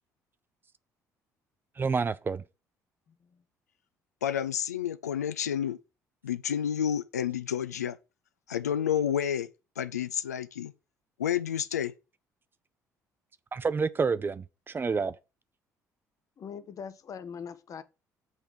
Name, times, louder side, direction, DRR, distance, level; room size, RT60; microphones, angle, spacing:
voice 1, 1.8-2.4 13.5-15.2, right 5 dB, 25° right, 0.5 m, -29 dB
voice 2, 4.2-5.8 6.2-8.0 8.5-9.5 9.8-10.7 11.2-11.9, left 9 dB, 80° left, 0.3 m, -30 dB
voice 3, 16.4-17.8, left 7 dB, 40° left, 0.8 m, -41 dB
8.0 x 3.4 x 5.4 m
figure-of-eight pair, 50°, 9 cm